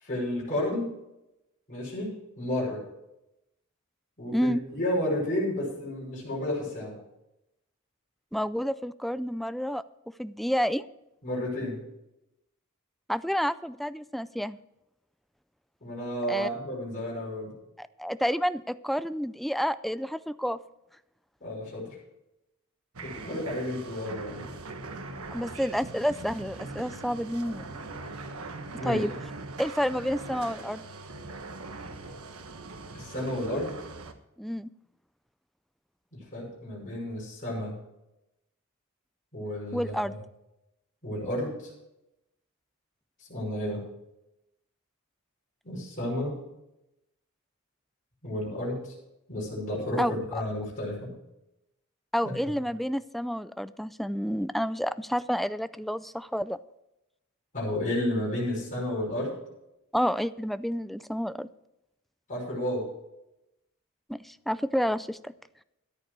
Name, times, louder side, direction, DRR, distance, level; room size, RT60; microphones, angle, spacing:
voice 1, 0.0-0.9 1.7-2.8 4.2-7.0 11.2-11.8 15.8-17.5 21.4-21.8 23.0-24.5 28.8-29.0 32.9-33.9 36.3-37.8 39.3-40.1 41.0-41.7 43.3-43.8 45.6-46.4 48.2-48.8 49.3-51.1 52.2-52.5 57.5-59.3 62.3-62.9, left 1 dB, 40° left, -5 dB, 5.7 m, -32 dB
voice 2, 8.3-9.8 10.2-10.8 13.1-14.6 16.3-16.5 17.8-20.6 25.3-27.6 28.8-29.1 29.6-30.8 34.4-34.7 39.7-40.1 50.0-50.2 52.1-56.6 59.9-61.5 64.1-65.3, equal, ahead, 14 dB, 0.3 m, -29 dB
sound 1, 22.9-34.1, right 3 dB, 80° right, 1.2 m, -41 dB
13.5 x 10.5 x 4.6 m, 0.89 s
head